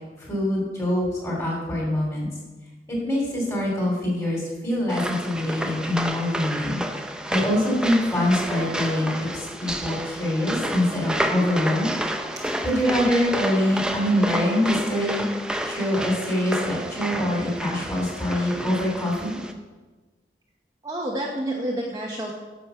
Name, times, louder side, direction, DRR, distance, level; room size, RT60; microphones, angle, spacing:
voice 1, 0.2-2.3 2.9-6.8 7.3-11.9 12.6-15.3 15.6-19.3, left 1 dB, 15° left, -2 dB, 2.8 m, -24 dB
sound 1, 4.9-19.5, right 1 dB, 5° right, 0.5 m, -30 dB
voice 2, 20.8-22.3, right 1 dB, 20° right, -2 dB, 0.9 m, -29 dB
10.0 x 5.1 x 6.9 m, 1.3 s
head